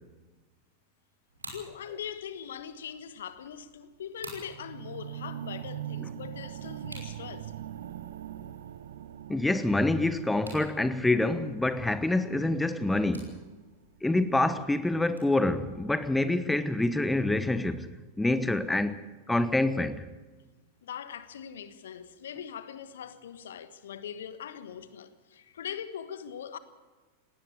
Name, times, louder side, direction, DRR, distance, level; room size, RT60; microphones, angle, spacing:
sound 1, 1.3-15.4, right 2 dB, 80° right, 5.8 m, -53 dB
voice 1, 1.5-7.5 20.8-26.6, left 8 dB, 60° left, 1.3 m, -41 dB
sound 2, 4.5-14.6 15.3-15.4, right 11 dB, 60° right, 0.9 m, -43 dB
voice 2, 9.3-13.4 14.0-17.9 18.2-19.0 19.3-20.0, left 2 dB, 5° left, 1.0 m, -26 dB
19.5 x 17.5 x 8.4 m
figure-of-eight pair, 90°, 0 cm